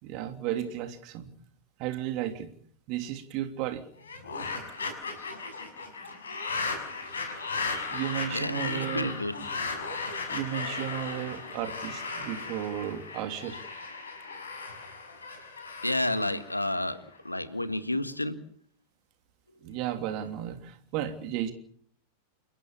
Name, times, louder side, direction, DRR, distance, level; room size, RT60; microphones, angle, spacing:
voice 1, 0.0-1.3 1.8-2.5 2.9-3.8 7.9-9.1 10.3-13.6 19.6-21.5, right 11 dB, 40° right, 7 dB, 3.0 m, -34 dB
sound 1, 4.0-17.2, left 4 dB, 70° left, 6.2 m, -36 dB
voice 2, 8.3-9.4 15.8-18.4, left 1 dB, 85° left, 11 dB, 1.8 m, -30 dB
29.0 x 15.0 x 7.3 m, 0.64 s
figure-of-eight pair, 90°, 0 cm